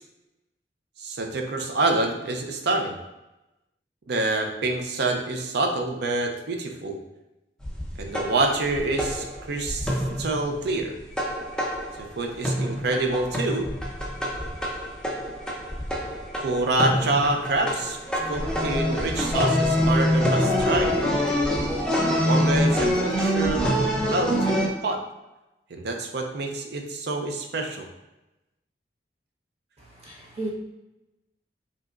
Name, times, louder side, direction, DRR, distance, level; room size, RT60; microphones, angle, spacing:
voice 1, 1.0-3.0 4.1-7.0 8.0-9.9 10.2-10.9 12.2-13.7 16.4-18.0 18.2-20.9 22.2-25.0 25.7-27.9, right 2 dB, 65° right, 3 dB, 0.5 m, -27 dB
sound 1, 7.6-12.2 12.4-24.7, equal, 5° left, 0.5 m, -26 dB
voice 2, 29.8-30.5, right 2 dB, 35° right, -5 dB, 0.9 m, -35 dB
4.9 x 2.8 x 2.5 m, 0.98 s
head